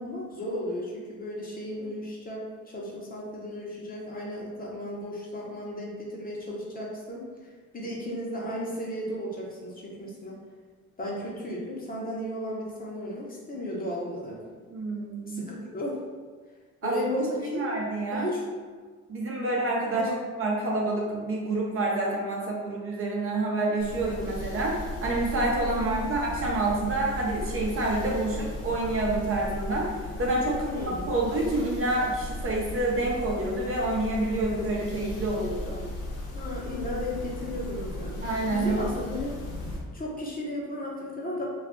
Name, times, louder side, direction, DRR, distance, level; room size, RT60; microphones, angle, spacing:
voice 1, 0.0-10.4 11.0-14.4 15.3-16.0 16.8-17.7 18.1-18.4 20.0-20.1 25.7-26.2 30.5-31.1 36.3-38.2 38.5-39.3 39.9-41.4, left 1 dB, 30° left, -4 dB, 0.8 m, -34 dB
voice 2, 14.7-15.4 16.8-17.3 17.5-18.3 19.1-20.1 20.4-30.6 31.1-35.8 38.2-38.8, right 2 dB, 45° right, -2 dB, 0.7 m, -28 dB
sound 1, 23.8-39.8, left 1 dB, 60° left, 0.8 m, -36 dB
2.4 x 2.3 x 3.6 m, 1.5 s
cardioid pair, 90°, 30 cm